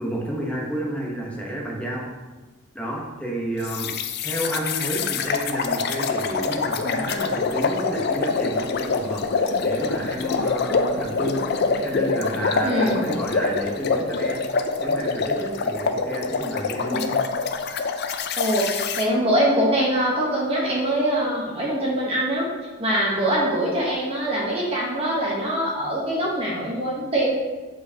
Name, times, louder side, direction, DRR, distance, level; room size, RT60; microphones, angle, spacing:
voice 1, 0.0-2.1 2.7-3.9 4.2-14.5 14.8-17.2, right 1 dB, 5° left, -3 dB, 0.9 m, -30 dB
sound 1, 3.6-19.1, left 4 dB, 50° left, 0.4 m, -25 dB
voice 2, 12.6-13.1 16.9-17.0 18.4-22.5 22.8-27.3, right 1 dB, 30° right, -4 dB, 1.0 m, -23 dB
7.3 x 4.6 x 2.8 m, 1.3 s
head